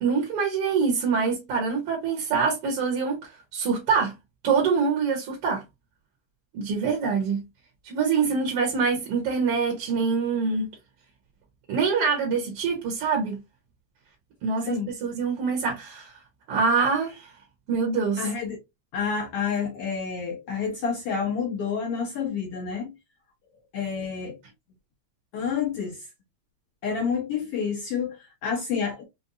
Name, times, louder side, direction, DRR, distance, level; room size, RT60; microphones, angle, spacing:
voice 1, 0.0-4.1 4.4-5.6 6.5-7.4 7.8-10.7 11.7-13.4 14.4-16.2 16.5-17.3 17.7-18.3, right 5 dB, 60° right, 1.8 m, -25 dB
voice 2, 18.2-18.6 18.9-22.9 23.7-24.4 25.3-26.1 26.8-29.0, left 6 dB, 80° left, 1.3 m, -29 dB
5.4 x 2.2 x 2.6 m
omnidirectional pair, 3.4 m